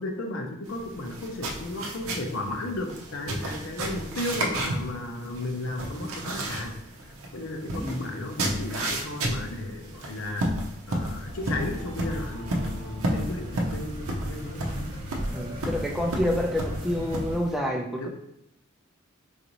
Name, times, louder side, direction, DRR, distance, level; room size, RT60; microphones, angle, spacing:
voice 1, 0.0-10.6 10.9-14.8 17.9-18.1, left 2 dB, 70° left, 3 dB, 0.6 m, -34 dB
sound 1, 0.7-17.6, right 1 dB, 90° right, 0.6 m, -33 dB
sound 2, 11.2-17.4, equal, 25° right, 1.2 m, -38 dB
voice 2, 15.3-18.1, left 1 dB, ahead, 0 dB, 0.4 m, -28 dB
4.0 x 2.6 x 3.0 m, 0.78 s
head